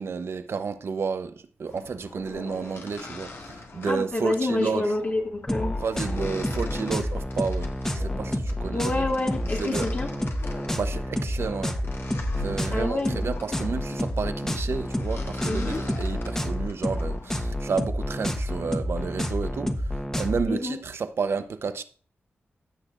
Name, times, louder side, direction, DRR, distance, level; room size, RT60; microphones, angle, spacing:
voice 1, 0.0-4.9 5.8-9.0 9.6-9.9 10.5-11.9 12.4-21.8, right 5 dB, 70° right, 0.8 m, -31 dB
sound 1, 1.7-17.5, left 3 dB, 70° left, 1.7 m, -42 dB
voice 2, 3.9-5.7 8.7-10.1 12.7-13.2 13.5-13.7 15.4-15.8 20.5-20.8, left 2 dB, 50° left, 2.2 m, -28 dB
sound 2, 5.5-20.5, left 1 dB, 10° left, 1.2 m, -29 dB
15.5 x 6.4 x 2.5 m
cardioid pair, 70°, 4 cm